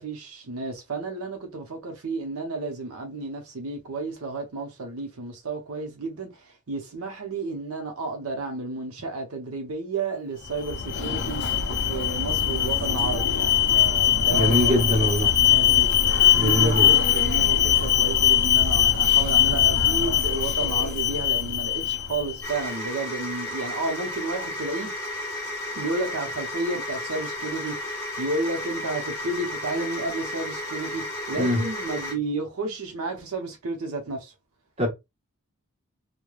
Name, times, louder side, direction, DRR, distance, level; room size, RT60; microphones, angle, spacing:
voice 1, 0.0-15.1 15.4-24.9 25.8-34.3, right 3 dB, 80° right, 0.8 m, -32 dB
Alarm, 10.5-22.5, left 9 dB, 50° left, 0.4 m, -21 dB
voice 2, 14.3-15.3 16.3-16.9 31.4-31.6 34.8-34.9, left 1 dB, 30° right, 1.2 m, -22 dB
sound 1, 22.4-32.1, left 1 dB, 15° left, 1.2 m, -33 dB
3.1 x 2.2 x 2.3 m
head